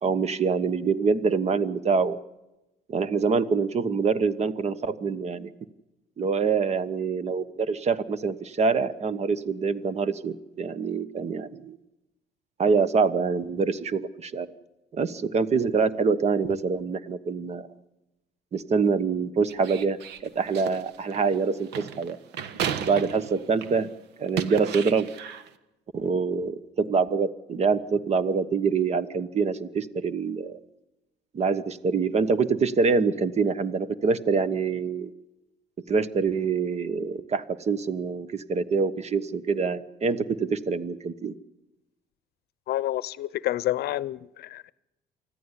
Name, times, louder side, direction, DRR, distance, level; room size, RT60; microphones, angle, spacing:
voice 1, 0.0-2.2 2.9-5.5 6.2-11.8 12.6-14.5 14.9-17.7 18.5-20.0 20.2-22.2 22.8-23.9 24.2-25.1 25.9-30.6 31.3-35.1 35.9-41.3, right 5 dB, 40° right, 15 dB, 1.2 m, -25 dB
sound 1, 19.5-23.8 24.2-25.5, right 8 dB, 85° right, 1.3 m, -34 dB
voice 2, 42.7-44.7, left 14 dB, 70° left, 20 dB, 0.7 m, -29 dB
24.5 x 14.5 x 9.9 m, 0.97 s
cardioid pair, 110°, 17 cm